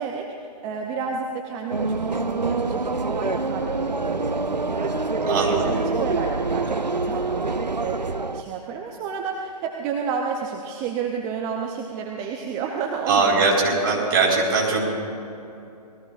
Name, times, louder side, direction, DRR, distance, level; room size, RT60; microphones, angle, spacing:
voice 1, 0.0-4.9 5.5-5.7 6.0-7.4 7.8-8.0 8.3-14.3, right 6 dB, 15° right, 2 dB, 0.7 m, -31 dB
sound 1, 1.7-8.4, right 3 dB, 85° right, 0.7 m, -25 dB
voice 2, 5.3-5.7 13.1-14.9, right 3 dB, 35° right, -2 dB, 4.4 m, -21 dB
28.5 x 20.0 x 2.5 m, 2.7 s
figure-of-eight pair, 135°, 21 cm